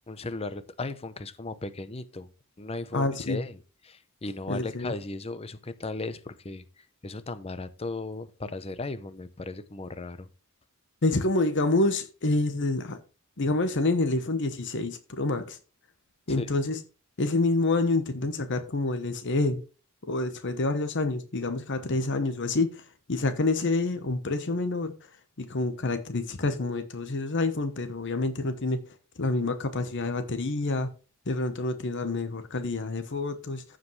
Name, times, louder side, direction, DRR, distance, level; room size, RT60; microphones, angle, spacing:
voice 1, 0.1-2.3 2.6-3.6 3.8-10.3 16.3-16.5, left 2 dB, 30° left, 0.7 m, -36 dB
voice 2, 2.9-3.4 4.5-4.9 11.0-13.0 13.4-15.6 16.3-16.8 17.2-19.6 20.0-22.8 23.1-25.1 25.4-28.8 29.2-30.9 31.3-33.8, left 2 dB, 60° left, 1.0 m, -27 dB
15.0 x 5.1 x 3.2 m
head